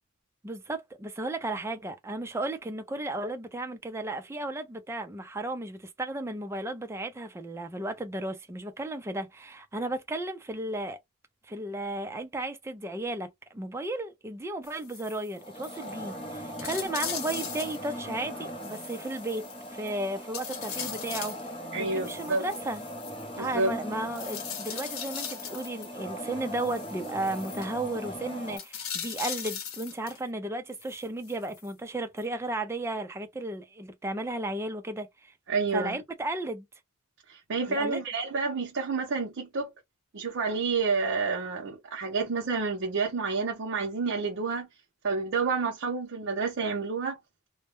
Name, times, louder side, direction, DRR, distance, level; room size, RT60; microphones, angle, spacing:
voice 1, 0.4-11.0 11.5-19.4 19.7-21.4 21.8-22.8 23.4-35.3 35.7-36.7 37.7-38.0, right 2 dB, 10° right, 0.4 m, -34 dB
sound 1, 14.6-15.3 15.6-15.8 16.1-16.2 16.6-17.9 18.6-19.9 20.3-21.5 22.0-23.2 24.1-25.9 26.6-27.7 28.5-30.2 30.7-31.7 32.2-32.3, left 8 dB, 75° left, 0.6 m, -39 dB
sound 2, 15.4-28.6, equal, 25° left, 0.7 m, -40 dB
voice 2, 21.7-22.4 23.4-23.7 35.5-36.0 37.3-39.7 40.1-44.7 45.0-47.2, right 4 dB, 60° right, 0.6 m, -29 dB
2.2 x 2.0 x 2.9 m
head